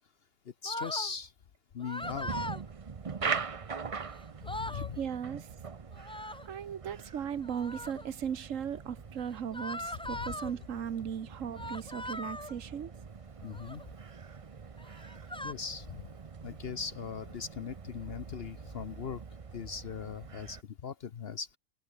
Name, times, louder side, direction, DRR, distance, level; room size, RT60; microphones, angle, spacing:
voice 1, 0.6-1.3 1.7-2.3 4.4-5.0 10.1-10.4 13.4-13.8 15.4-16.0 16.4-19.2 19.5-21.6, left 6 dB, 55° left, 1.0 m, -39 dB
sound 1, 0.6-1.1 1.8-2.6 3.9-4.0 4.3-4.9 5.9-6.5 7.4-8.1 9.5-10.5 11.5-12.6 13.4-13.8 14.8-15.5, left 1 dB, 5° left, 0.4 m, -40 dB
sound 2, 2.0-20.6, right 5 dB, 35° right, 0.7 m, -43 dB
voice 2, 4.7-5.5 6.4-12.9, right 8 dB, 75° right, 1.5 m, -37 dB
omnidirectional pair, 1.3 m